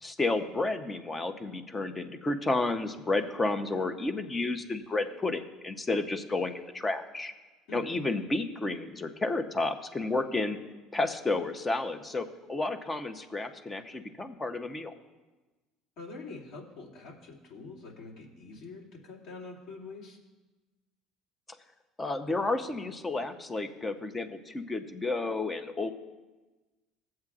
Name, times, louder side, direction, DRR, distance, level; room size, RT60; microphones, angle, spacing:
voice 1, 0.0-7.3 7.7-10.6 10.9-14.9 22.0-25.9, left 2 dB, 20° left, 8 dB, 0.7 m, -31 dB
voice 2, 16.0-20.2, left 3 dB, 65° left, -4 dB, 2.4 m, -45 dB
16.0 x 7.6 x 2.4 m, 1.2 s
cardioid pair, 115°, 0 cm